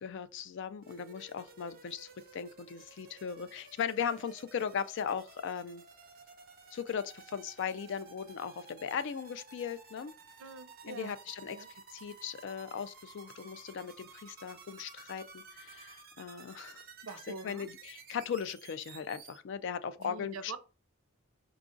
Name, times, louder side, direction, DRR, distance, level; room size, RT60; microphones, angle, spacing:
voice 1, 0.0-5.8 6.7-10.1 10.8-16.8 17.3-20.6, left 7 dB, 60° left, 0.4 m, -38 dB
sound 1, 0.8-19.4, right 5 dB, 45° right, 0.8 m, -54 dB
voice 2, 10.4-11.1 11.5-11.7 17.1-17.7 20.0-20.6, right 4 dB, 80° right, 0.6 m, -44 dB
4.8 x 2.4 x 3.7 m
head